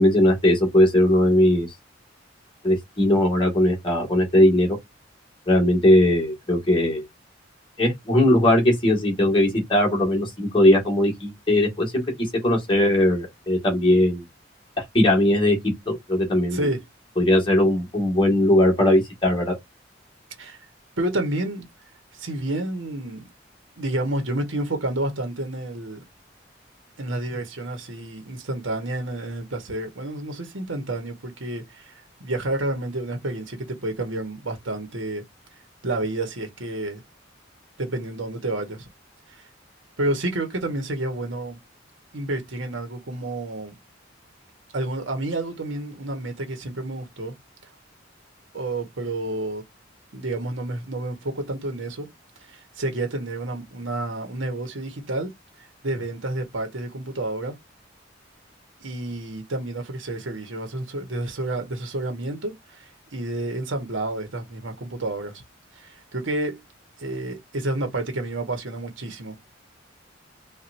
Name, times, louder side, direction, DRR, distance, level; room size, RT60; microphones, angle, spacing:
voice 1, 0.0-1.7 2.6-4.8 5.5-7.0 7.8-12.0 12.4-14.2 14.9-15.6 15.9-16.7 17.2-19.5, left 1 dB, 25° left, 1.8 m, -19 dB
voice 2, 16.5-16.8 20.4-20.6 21.0-21.7 22.1-23.3 23.8-26.0 27.0-35.2 35.8-37.0 37.8-38.9 39.3-39.4 40.0-41.6 42.1-43.8 44.7-47.3 48.5-49.6 50.1-52.1 52.4-55.3 55.6-57.5 58.8-65.4 65.7-66.6 67.0-69.6, right 2 dB, 85° right, 1.2 m, -30 dB
4.3 x 2.5 x 2.6 m
head